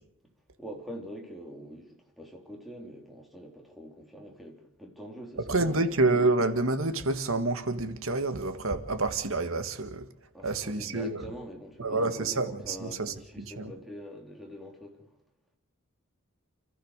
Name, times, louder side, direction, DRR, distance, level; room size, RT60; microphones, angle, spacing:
voice 1, 0.6-5.8 10.3-15.1, equal, ahead, 3.9 m, -44 dB
voice 2, 5.5-10.1 10.4-11.2 11.8-13.7, right 2 dB, 70° right, 1.9 m, -28 dB
29.0 x 14.5 x 6.7 m
head